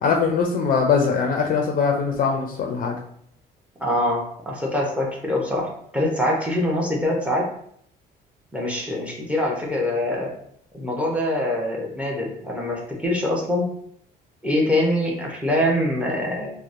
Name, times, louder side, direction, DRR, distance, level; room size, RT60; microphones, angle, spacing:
voice 1, 0.0-3.0, left 5 dB, 55° left, 2 dB, 0.4 m, -21 dB
voice 2, 3.8-7.5 8.5-10.3 10.7-13.7 14.4-16.5, left 1 dB, 5° right, -1 dB, 0.6 m, -24 dB
2.8 x 2.0 x 2.5 m, 0.68 s
cardioid pair, 110°, 17 cm